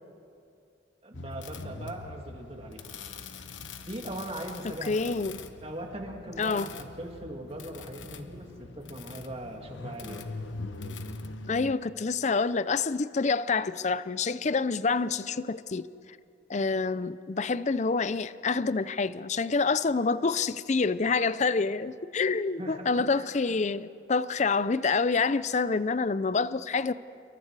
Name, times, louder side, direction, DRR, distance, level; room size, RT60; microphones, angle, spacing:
voice 1, 1.0-2.9 3.9-5.2 5.6-10.2 22.6-23.6, right 1 dB, 30° right, 2 dB, 2.3 m, -40 dB
sound 1, 1.1-11.7, left 3 dB, 85° left, 1.1 m, -42 dB
voice 2, 4.9-5.4 6.4-6.7 11.5-15.9 16.5-26.9, left 4 dB, 40° left, 16 dB, 0.5 m, -27 dB
28.0 x 23.0 x 4.8 m, 2.5 s
head